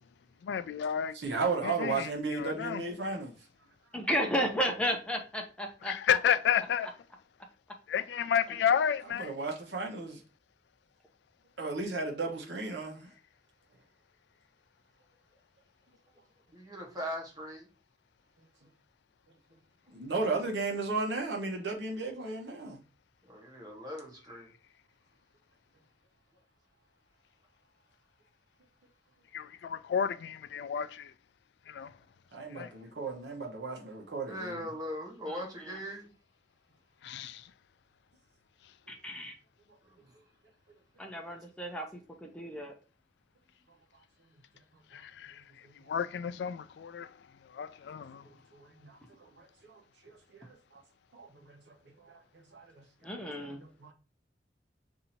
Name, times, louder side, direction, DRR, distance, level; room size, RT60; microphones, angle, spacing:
voice 1, 0.4-1.2 1.6-2.8 5.8-6.9 7.9-9.3 29.3-31.1 31.7-31.9 32.6-32.7 37.0-37.4 45.2-45.3 45.9-47.1 47.5-48.2, left 8 dB, 70° left, 0.3 m, -31 dB
voice 2, 1.1-3.3 9.1-10.2 11.6-13.1 19.9-22.8 32.3-34.7 48.2-50.8 51.1-51.6 52.0-53.2 53.5-53.9, right 3 dB, 85° right, 1.0 m, -35 dB
voice 3, 3.9-6.2 35.3-35.4 38.9-39.3 41.0-42.7 53.0-53.6, equal, 5° left, 0.5 m, -33 dB
voice 4, 16.5-17.7 23.3-24.5 34.3-36.1 40.0-40.1, equal, 20° right, 1.0 m, -40 dB
2.7 x 2.7 x 4.2 m
head